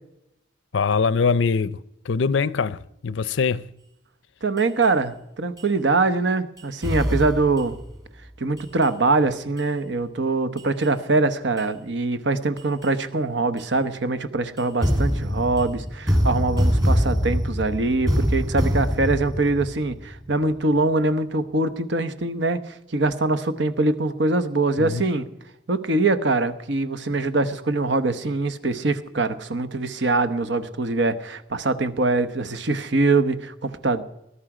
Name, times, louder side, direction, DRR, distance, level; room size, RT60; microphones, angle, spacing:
voice 1, 0.7-3.7 24.8-25.0, left 5 dB, 75° left, 0.5 m, -23 dB
voice 2, 4.4-7.8 8.4-25.3 25.7-34.0, right 3 dB, 65° right, 1.0 m, -23 dB
sound 1, 4.6-4.9 5.6-5.7 6.6-7.9 8.6-8.9 9.6-9.7 10.6-10.9 11.6-11.7 12.6-12.9 13.6-13.7 14.6-20.4, equal, 20° right, 2.8 m, -24 dB
20.0 x 11.0 x 5.0 m
head